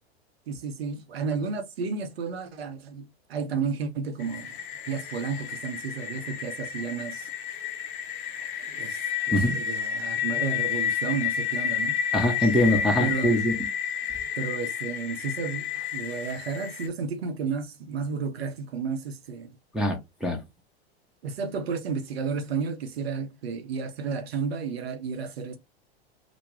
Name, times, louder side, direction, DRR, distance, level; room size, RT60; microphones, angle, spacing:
voice 1, 0.5-4.5 4.9-7.3 8.7-9.0 9.3-12.0 13.0-13.4 14.4-19.5 21.2-25.6, right 5 dB, 70° right, 0.7 m, -32 dB
sound 1, 4.2-16.9, left 8 dB, 50° left, 0.6 m, -31 dB
voice 2, 12.1-13.6 19.7-20.4, equal, ahead, 0.6 m, -23 dB
2.2 x 2.1 x 3.1 m
hypercardioid pair, 95°, 32 cm